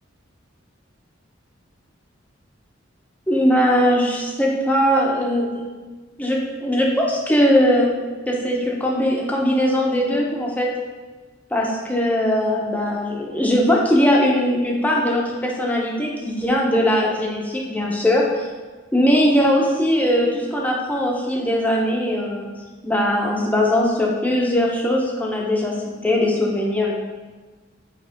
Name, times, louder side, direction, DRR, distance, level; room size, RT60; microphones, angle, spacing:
voice 1, 3.3-5.5 6.2-7.9 8.3-10.7 11.5-18.5 18.9-22.5 22.8-26.9, equal, 10° left, -2 dB, 0.9 m, -20 dB
9.0 x 3.3 x 3.6 m, 1.3 s
head